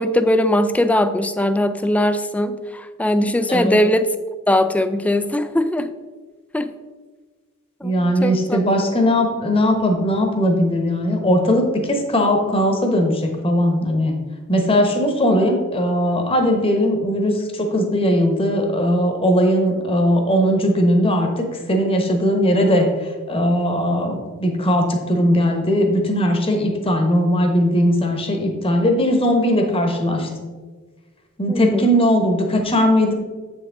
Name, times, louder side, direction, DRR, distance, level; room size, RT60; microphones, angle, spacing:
voice 1, 0.0-4.2 4.5-5.9 6.5-6.8 7.8-8.6 31.5-31.9, left 1 dB, 5° left, 10 dB, 0.3 m, -20 dB
voice 2, 7.8-14.1 14.5-30.3 31.4-33.1, equal, 25° left, 4 dB, 1.1 m, -19 dB
8.1 x 6.4 x 3.5 m, 1.4 s
head